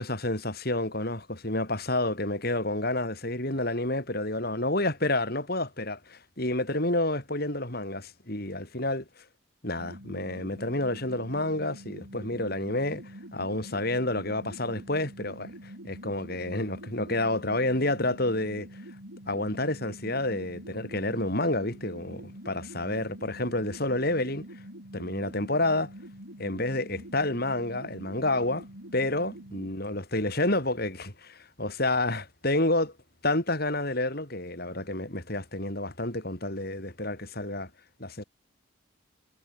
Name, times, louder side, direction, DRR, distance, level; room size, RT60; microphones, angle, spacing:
voice 1, 0.0-9.0 9.6-13.0 13.3-18.7 19.3-24.4 24.9-25.9 26.4-28.6 28.9-32.9 33.2-37.7 38.0-38.2, left 2 dB, 45° left, 5.2 m, -29 dB
sound 1, 9.8-29.7, right 1 dB, 75° right, 7.0 m, -45 dB
head